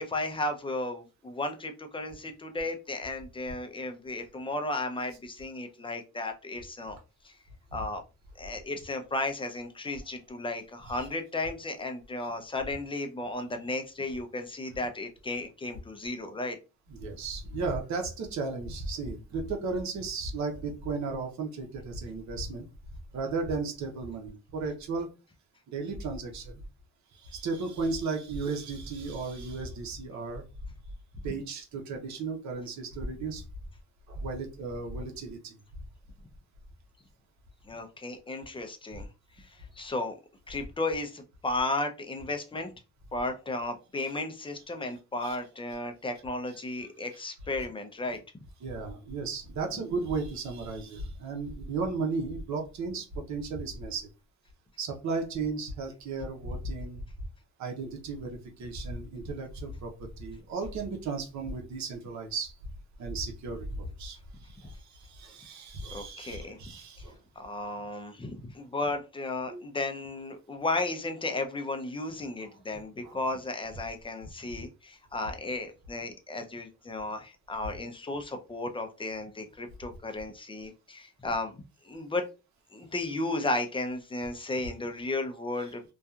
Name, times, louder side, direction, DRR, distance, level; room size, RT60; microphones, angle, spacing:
voice 1, 0.0-7.0 7.2-7.3 7.7-8.0 8.4-16.6 37.7-39.1 39.4-40.2 40.5-42.7 43.1-48.2 65.9-66.6 67.4-82.2 82.7-85.9, left 2 dB, 15° left, 6 dB, 0.5 m, -34 dB
voice 2, 16.9-22.7 23.1-25.1 25.7-26.6 27.1-30.4 31.2-33.4 34.1-35.5 45.2-45.4 48.6-54.1 54.8-57.0 57.6-62.5 63.0-67.2 69.5-69.6 72.4-72.5 73.0-73.2 74.5-74.6, right 4 dB, 65° right, 2 dB, 0.8 m, -35 dB
2.7 x 2.3 x 2.3 m, 0.30 s
cardioid pair, 90°, 30 cm